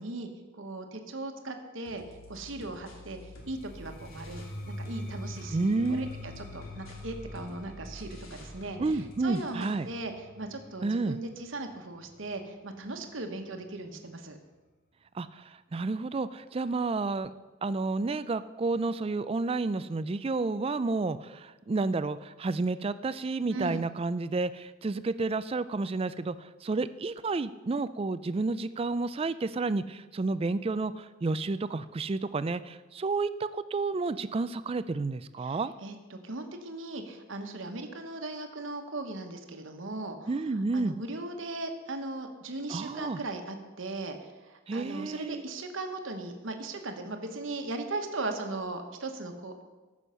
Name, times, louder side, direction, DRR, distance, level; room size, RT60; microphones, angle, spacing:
voice 1, 0.0-2.0 2.3-3.2 3.5-14.4 23.5-23.8 35.4-40.3 40.7-49.6, right 2 dB, 65° right, 5 dB, 1.2 m, -38 dB
sound 1, 1.9-4.6 4.9-9.9, equal, 80° left, 2.4 m, -50 dB
sound 2, 3.4-13.2, left 1 dB, 45° left, 1.4 m, -44 dB
voice 2, 5.5-6.1 8.8-9.9 10.8-11.2 15.1-17.3 17.6-35.7 40.3-41.0 42.7-43.2 44.7-45.4, right 3 dB, 25° right, 14 dB, 0.3 m, -30 dB
14.5 x 6.3 x 5.6 m, 1.2 s
head